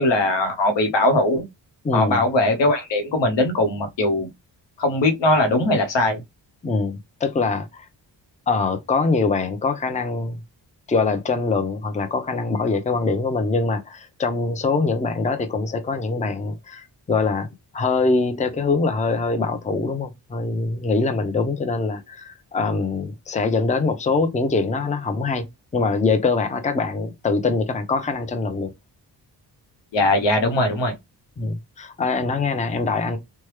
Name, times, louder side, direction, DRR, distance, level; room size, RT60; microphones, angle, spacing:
voice 1, 0.0-1.4 1.9-4.3 4.8-6.2 29.9-30.9, left 2 dB, 75° left, 0.9 m, -20 dB
voice 2, 1.8-2.2 6.6-7.9 8.5-10.4 10.9-17.5 17.7-25.4 25.7-28.7 31.4-33.2, left 4 dB, 15° left, 0.5 m, -23 dB
3.1 x 2.2 x 3.1 m
cardioid pair, 65°, 44 cm